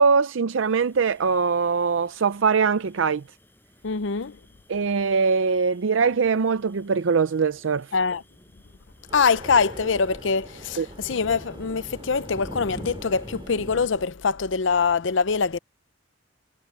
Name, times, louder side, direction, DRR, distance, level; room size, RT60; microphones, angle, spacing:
voice 1, 0.0-3.2 4.7-7.9 10.8-10.9, right 5 dB, 90° right, 0.5 m, -22 dB
sound 1, 0.5-13.9, equal, 10° left, 5.6 m, -46 dB
voice 2, 3.8-4.4 7.9-8.2 9.1-15.6, left 5 dB, 70° left, 0.6 m, -24 dB
sound 2, 9.1-14.1, right 1 dB, 25° right, 3.3 m, -44 dB
head